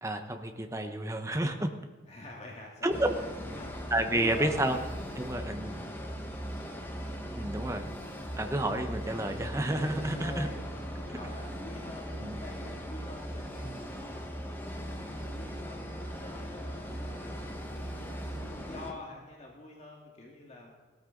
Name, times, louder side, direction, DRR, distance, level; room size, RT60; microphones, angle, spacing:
voice 1, 0.0-1.7 2.8-3.1 3.9-4.8 5.2-5.8 7.4-7.8 8.4-10.5 12.2-12.4 13.6-13.8, right 1 dB, 15° right, 5 dB, 1.1 m, -30 dB
voice 2, 2.1-4.8 10.0-14.2 14.8-20.8, left 2 dB, 35° left, -2 dB, 2.1 m, -47 dB
sound 1, 2.9-18.9, equal, 10° left, 1.5 m, -39 dB
18.0 x 13.0 x 4.0 m, 1.3 s
head